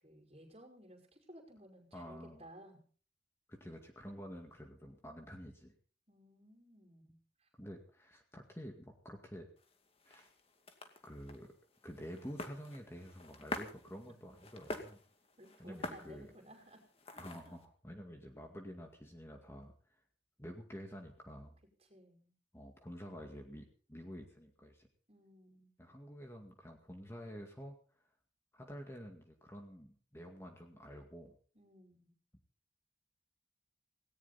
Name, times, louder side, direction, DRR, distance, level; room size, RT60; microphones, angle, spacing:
voice 1, 0.0-2.8 6.1-7.5 14.0-14.1 15.4-16.8 17.1-17.6 21.9-22.3 25.1-25.7 31.5-32.2, right 1 dB, 30° right, 2 dB, 5.4 m, -57 dB
voice 2, 1.9-2.4 3.5-5.7 7.6-9.5 10.0-10.3 11.0-11.5 11.8-15.0 15.6-16.3 17.2-20.0 20.4-21.6 22.5-24.9 25.8-28.1 28.5-31.3, equal, 15° left, 3 dB, 2.1 m, -49 dB
sound 1, 9.6-17.7, left 2 dB, 30° left, 2.4 m, -48 dB
18.5 x 18.0 x 4.2 m, 0.41 s
head